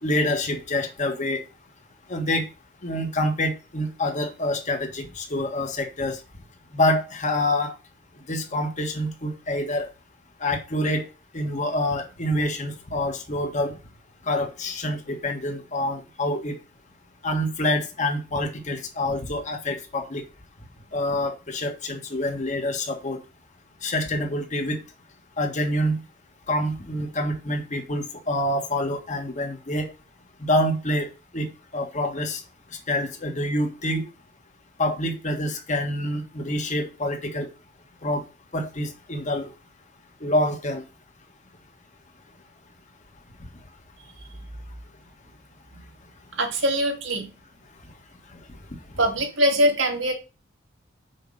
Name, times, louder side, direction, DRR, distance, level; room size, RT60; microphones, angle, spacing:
voice 1, 0.0-1.4 2.1-2.5 2.8-6.2 6.7-7.7 8.3-9.9 10.4-11.1 11.3-13.8 14.2-16.6 17.2-20.2 20.9-23.2 23.8-24.8 25.4-26.0 26.5-29.9 30.4-31.1 31.3-31.5 31.7-32.4 32.9-34.0 34.8-37.5 38.0-38.2 38.5-39.5 40.2-40.8 48.3-48.4, left 1 dB, 40° left, 1.7 m, -26 dB
voice 2, 46.4-47.3 49.0-50.1, equal, 90° right, 2.4 m, -22 dB
6.4 x 4.8 x 6.4 m
head